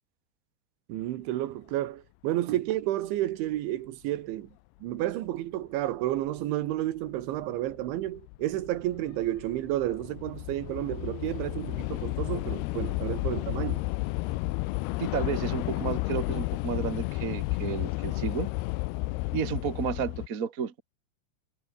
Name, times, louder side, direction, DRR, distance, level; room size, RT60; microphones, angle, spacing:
voice 1, 0.9-4.5 4.8-13.8, right 14 dB, 90° right, 3.9 m, -31 dB
Train / Subway metro underground, 6.3-6.4 7.2-7.4 7.7-20.3, left 21 dB, 85° left, 2.3 m, -32 dB
voice 2, 15.0-18.5 19.3-20.8, right 6 dB, 60° right, 0.9 m, -32 dB
omnidirectional pair, 5.2 m